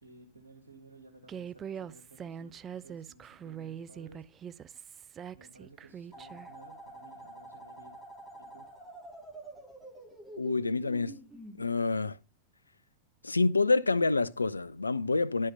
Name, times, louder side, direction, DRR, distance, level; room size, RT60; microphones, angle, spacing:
voice 1, 0.0-4.3 5.3-8.0 8.4-8.7, right 2 dB, 80° right, 2.0 m, -56 dB
Human voice, 1.3-6.5, right 8 dB, 25° right, 0.4 m, -43 dB
sound 1, 6.1-11.6, right 1 dB, ahead, 3.3 m, -48 dB
voice 2, 10.4-11.2 11.6-12.2 13.2-15.5, left 3 dB, 80° left, 0.4 m, -27 dB
11.5 x 5.4 x 5.3 m
figure-of-eight pair, 90°, 0 cm